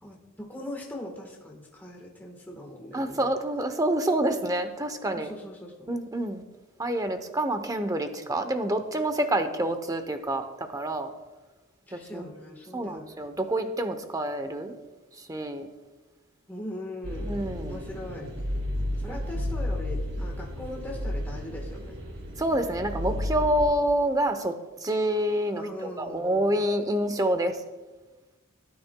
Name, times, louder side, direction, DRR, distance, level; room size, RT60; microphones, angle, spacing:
voice 1, 0.0-3.2 5.1-5.7 11.9-13.3 16.5-17.3 17.6-18.3 19.0-22.0 25.5-26.4, left 1 dB, 10° left, -1 dB, 1.2 m, -40 dB
voice 2, 2.9-5.3 5.9-6.4 6.8-11.1 11.9-12.2 12.7-14.7 15.3-15.7 17.2-17.8 19.1-19.2 22.4-24.6 24.8-27.6, right 1 dB, 15° right, 8 dB, 0.7 m, -27 dB
sound 1, 17.0-23.6, left 1 dB, 60° right, 2.3 m, -32 dB
17.0 x 9.3 x 2.2 m, 1.2 s
head